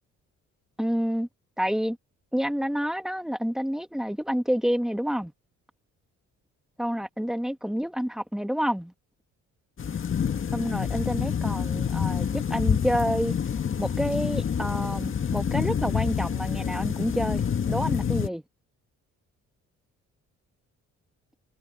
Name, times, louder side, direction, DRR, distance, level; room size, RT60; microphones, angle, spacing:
voice 1, 0.8-1.3 1.6-2.0 2.3-5.3 6.8-8.9 10.5-13.3 13.8-18.4, equal, ahead, 1.7 m, -28 dB
sound 1, 9.8-18.3, left 7 dB, 45° left, 1.7 m, -27 dB
cardioid pair, 90°, 30 cm